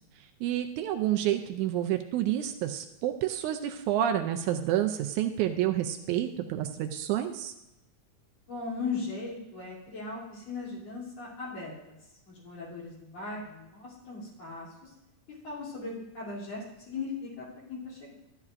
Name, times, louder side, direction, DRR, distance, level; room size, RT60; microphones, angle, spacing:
voice 1, 0.4-7.5, right 11 dB, 80° right, 6 dB, 1.9 m, -29 dB
voice 2, 8.5-12.0 12.3-14.9 15.4-18.1, left 4 dB, 55° left, -6 dB, 4.0 m, -38 dB
13.0 x 10.5 x 2.5 m, 0.91 s
omnidirectional pair, 3.6 m